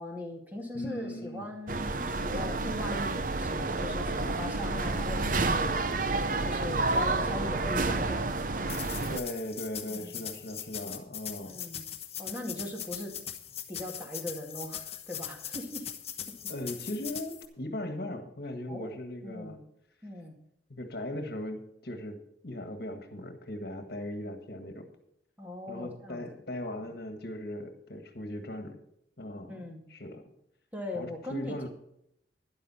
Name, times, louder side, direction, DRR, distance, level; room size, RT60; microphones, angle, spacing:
voice 1, 0.0-5.7 6.4-8.8 9.9-10.3 11.4-11.8 12.2-13.1 13.7-15.9 18.7-18.9 19.2-19.6 20.0-20.3 25.4-26.2 29.5-29.8 30.7-31.7, left 1 dB, 10° right, 0 dB, 2.4 m, -39 dB
voice 2, 0.7-1.5 9.1-11.6 16.5-19.6 20.7-22.2 22.4-24.9 25.7-28.8 29.2-29.5 29.9-30.3 30.9-31.7, left 1 dB, 55° left, 6 dB, 1.7 m, -38 dB
sound 1, 1.7-9.2, right 3 dB, 45° right, 0.7 m, -30 dB
sound 2, 8.7-17.5, left 9 dB, 35° left, 1.2 m, -40 dB
13.0 x 10.5 x 4.3 m, 0.76 s
head